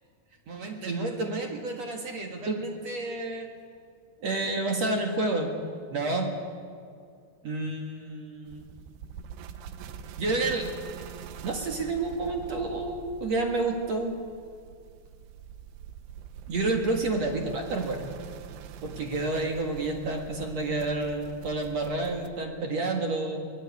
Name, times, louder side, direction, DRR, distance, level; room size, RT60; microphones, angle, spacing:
voice 1, 0.5-3.5 4.2-5.5 5.9-6.3 7.4-8.7 10.2-10.7 11.4-14.1 16.5-18.1 18.8-23.4, right 2 dB, 50° right, 3 dB, 2.3 m, -29 dB
sound 1, 8.5-22.3, right 8 dB, 75° right, 3.1 m, -44 dB
23.5 x 18.5 x 8.5 m, 2.3 s
omnidirectional pair, 5.1 m